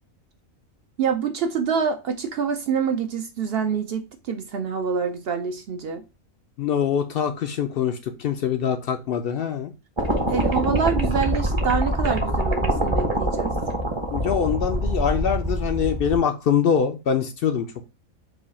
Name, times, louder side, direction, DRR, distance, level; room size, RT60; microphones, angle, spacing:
voice 1, 1.0-6.0 10.3-13.5, right 6 dB, 65° right, 0.6 m, -26 dB
voice 2, 6.6-9.7 14.1-17.8, left 7 dB, 65° left, 0.5 m, -24 dB
sound 1, 10.0-16.2, right 1 dB, 25° right, 0.7 m, -24 dB
4.8 x 2.3 x 4.1 m
omnidirectional pair, 1.4 m